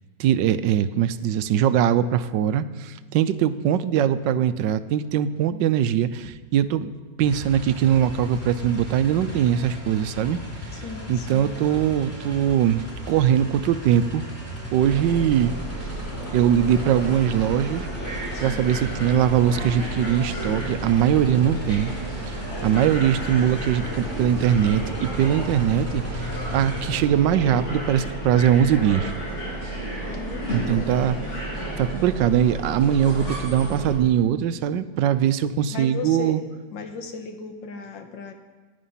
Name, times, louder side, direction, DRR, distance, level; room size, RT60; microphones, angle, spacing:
voice 1, 0.2-6.9 7.2-10.8 11.1-14.2 14.7-15.5 16.3-17.9 18.4-21.9 22.2-29.1 30.5-31.2 31.8-36.4, right 9 dB, 85° right, 13 dB, 1.3 m, -21 dB
sound 1, 7.2-27.0, equal, 5° left, 2.8 m, -37 dB
voice 2, 10.7-11.6 18.4-18.7 22.5-22.8 30.1-31.4 35.7-36.4 36.7-38.3, left 5 dB, 85° left, 6 dB, 1.9 m, -36 dB
sound 2, 14.8-34.0, right 1 dB, 40° left, 3.6 m, -32 dB
15.5 x 10.0 x 5.7 m, 1.4 s
omnidirectional pair, 1.9 m